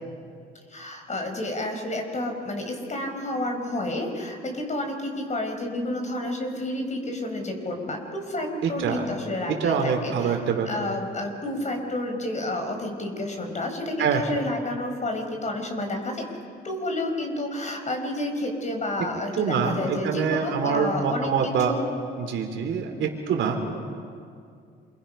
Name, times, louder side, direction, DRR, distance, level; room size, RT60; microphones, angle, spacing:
voice 1, 0.7-10.4 10.6-16.2 16.6-21.9, left 1 dB, 35° left, 4 dB, 5.1 m, -30 dB
voice 2, 8.6-9.1 9.6-10.7 14.0-14.2 19.0-21.7 22.2-23.7, right 6 dB, 75° right, 3 dB, 3.4 m, -25 dB
28.0 x 24.0 x 5.7 m, 2.2 s
cardioid pair, 90°, 20 cm